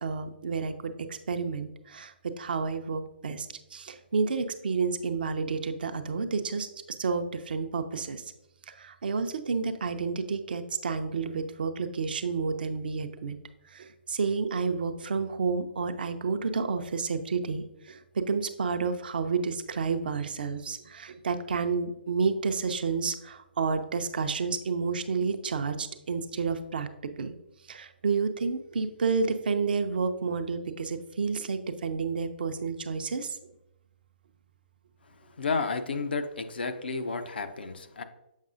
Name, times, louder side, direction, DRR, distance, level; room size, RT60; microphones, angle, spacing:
voice 1, 0.0-6.7 7.0-8.2 8.7-13.4 13.7-18.0 18.3-26.9 27.2-27.3 27.7-33.4, right 5 dB, 55° right, 8 dB, 0.6 m, -30 dB
voice 2, 35.2-38.0, left 4 dB, 65° left, 8 dB, 0.6 m, -32 dB
7.3 x 5.3 x 2.5 m, 0.90 s
figure-of-eight pair, 130°, 6 cm